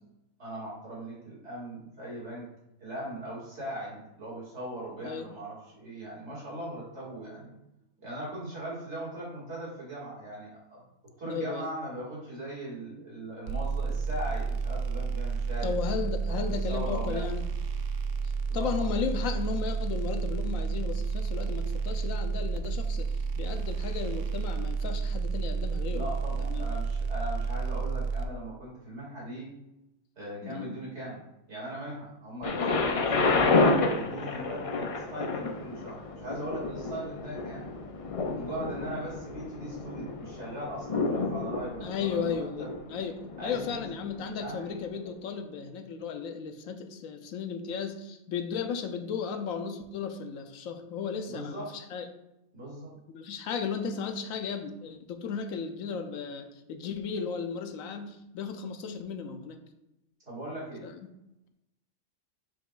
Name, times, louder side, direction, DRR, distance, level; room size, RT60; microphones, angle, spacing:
voice 1, 0.4-2.5 2.8-7.5 8.0-10.8 11.2-15.7 16.3-17.3 18.5-18.9 25.9-29.5 30.2-37.7 38.3-42.7 43.4-43.8 44.4-44.7 51.3-51.7 52.5-52.9 60.3-60.9, right 1 dB, 55° right, -5 dB, 2.6 m, -39 dB
voice 2, 11.3-11.7 15.6-17.4 18.2-26.1 26.4-26.7 30.4-30.8 41.8-52.1 53.1-59.6 60.8-60.9, left 6 dB, 85° left, 7 dB, 1.1 m, -35 dB
sound 1, 13.5-28.2, right 5 dB, 70° right, 0.9 m, -31 dB
Thunder, 32.4-44.3 45.0-45.1, left 3 dB, 65° left, 0.3 m, -30 dB
6.7 x 6.1 x 2.4 m, 0.89 s
omnidirectional pair, 1.4 m